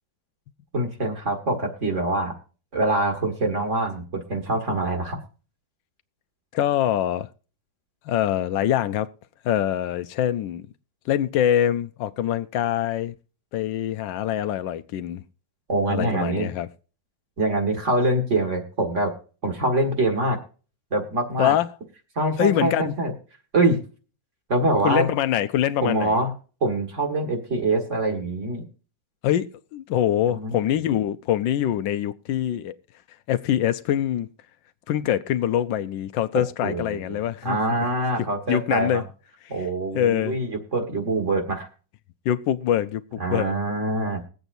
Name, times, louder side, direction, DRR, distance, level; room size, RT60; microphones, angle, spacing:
voice 1, 0.7-2.3 2.7-5.2 15.7-16.5 17.4-19.1 19.4-20.4 20.9-21.5 22.2-23.1 23.5-23.8 24.5-25.1 25.8-26.3 26.6-28.6 30.3-30.6 36.6-39.0 39.5-41.7 43.2-44.2, right 2 dB, 40° right, 2.1 m, -24 dB
voice 2, 6.5-7.3 8.1-9.1 9.4-10.7 11.1-13.1 13.5-15.2 15.9-16.7 21.4-21.7 22.4-22.9 24.8-26.2 29.2-32.8 33.3-34.3 34.9-37.6 38.2-39.0 39.9-40.4 42.2-43.5, left 11 dB, 85° left, 1.4 m, -24 dB
21.5 x 8.0 x 2.6 m
omnidirectional pair, 2.0 m